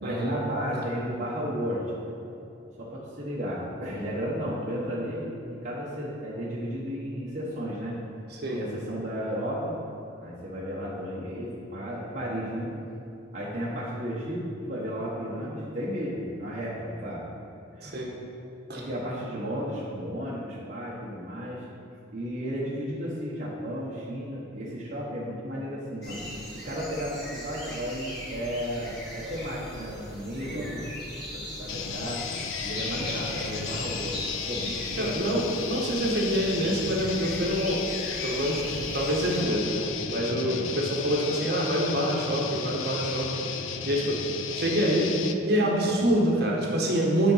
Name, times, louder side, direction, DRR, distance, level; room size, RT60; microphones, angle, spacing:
voice 1, 0.0-1.8 2.2-2.4 2.8-8.0 8.5-9.8 10.2-12.7 13.3-17.2 17.8-18.0 18.7-21.6 22.1-26.2 26.5-30.8 31.3-32.3 32.6-35.4 40.5-40.7 45.8-46.1, equal, 40° right, -7 dB, 1.1 m, -33 dB
sound 1, 26.0-39.4, left 1 dB, 55° left, 1.9 m, -39 dB
voice 2, 30.5-30.8 35.0-37.8 38.2-38.6 38.9-43.3 43.8-44.1 44.5-45.1 45.4-47.3, equal, 55° right, -2 dB, 1.4 m, -26 dB
sound 2, 31.7-45.4, left 7 dB, 80° left, 0.5 m, -34 dB
9.8 x 4.1 x 5.6 m, 2.7 s
head